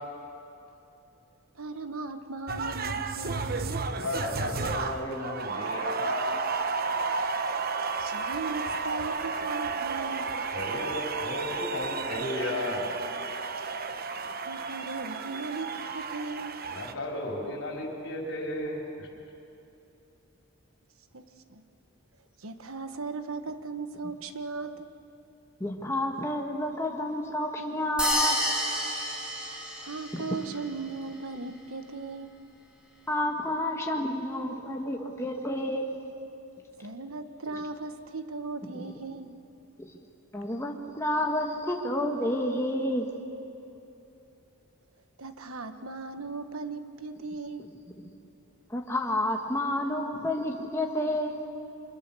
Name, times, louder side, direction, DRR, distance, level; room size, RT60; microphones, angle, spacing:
voice 1, 1.5-3.8 8.0-10.4 14.4-16.7 21.1-21.6 22.4-24.9 29.8-32.3 36.8-39.4 45.2-47.7, right 3 dB, 80° right, 9 dB, 1.3 m, -38 dB
sound 1, 2.5-16.9, right 4 dB, 45° right, 1.0 m, -32 dB
voice 2, 4.0-6.4 10.5-12.8 16.7-19.1, left 1 dB, 60° left, -1 dB, 4.4 m, -34 dB
voice 3, 25.6-28.4 30.1-30.4 33.1-35.9 38.6-38.9 39.8-40.0 40.3-43.1 48.7-51.4, left 1 dB, 15° left, 1 dB, 1.5 m, -30 dB
sound 2, 28.0-30.3, equal, 5° right, 3.5 m, -29 dB
29.5 x 25.0 x 7.0 m, 2.8 s
head